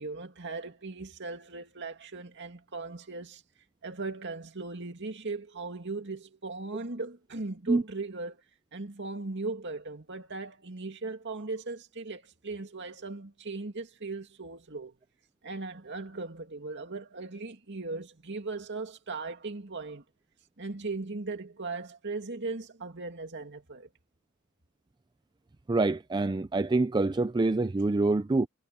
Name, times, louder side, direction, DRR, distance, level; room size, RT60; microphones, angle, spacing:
voice 1, 0.0-3.4 3.8-8.4 8.7-15.0 15.4-20.0 20.6-23.9 27.8-27.9, right 3 dB, 55° right, 2.4 m, -38 dB
voice 2, 25.7-28.5, right 2 dB, 20° right, 0.4 m, -26 dB
head